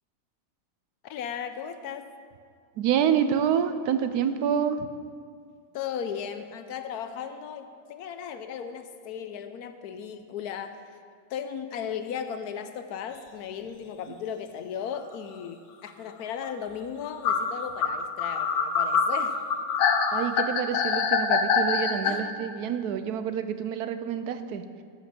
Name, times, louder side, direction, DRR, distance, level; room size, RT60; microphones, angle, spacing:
voice 1, 1.0-2.1 5.7-10.8 11.3-19.4 22.0-22.2, left 8 dB, 70° left, 9 dB, 1.1 m, -36 dB
voice 2, 2.8-4.9 14.1-14.2 20.1-24.6, right 8 dB, 75° right, 10 dB, 1.1 m, -27 dB
sound 1, 14.9-15.0 16.4-16.5 17.2-22.1, left 5 dB, 90° left, 1.4 m, -24 dB
14.0 x 5.9 x 6.0 m, 2.1 s
omnidirectional pair, 1.8 m